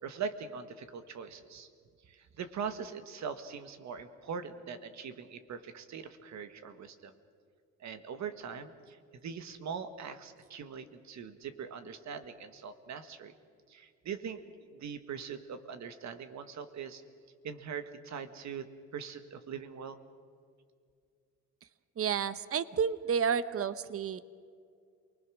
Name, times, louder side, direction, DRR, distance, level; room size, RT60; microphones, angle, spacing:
voice 1, 0.0-1.7 2.1-7.1 7.8-9.0 9.2-13.3 13.7-14.4 14.7-17.0 17.4-20.0, right 6 dB, 65° right, 10 dB, 1.7 m, -42 dB
voice 2, 22.0-24.2, right 7 dB, 50° right, 15 dB, 1.0 m, -30 dB
28.0 x 20.5 x 6.3 m, 2.2 s
cardioid pair, 90°, 30 cm